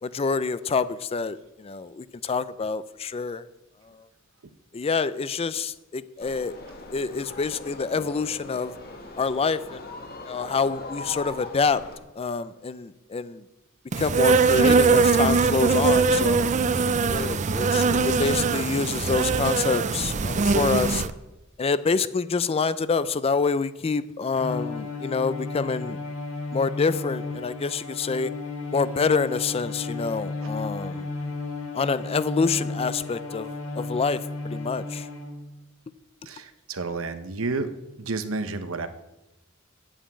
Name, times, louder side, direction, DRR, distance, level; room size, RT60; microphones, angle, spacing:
voice 1, 0.0-3.4 4.7-6.5 6.9-8.7 9.2-9.8 10.3-11.8 12.2-13.4 14.0-16.5 17.1-21.1 21.6-26.0 26.5-28.3 28.7-31.1 31.7-35.1, left 4 dB, 30° left, 15 dB, 0.4 m, -27 dB
sound 1, 6.2-12.0, left 3 dB, 50° left, 1.7 m, -40 dB
Insect, 13.9-21.1, right 4 dB, 35° right, 0.5 m, -21 dB
Bowed string instrument, 24.3-35.5, left 3 dB, 80° left, 1.8 m, -34 dB
voice 2, 36.3-37.7 38.0-38.9, right 3 dB, 70° right, 9 dB, 0.9 m, -30 dB
8.7 x 7.4 x 8.5 m, 0.96 s
head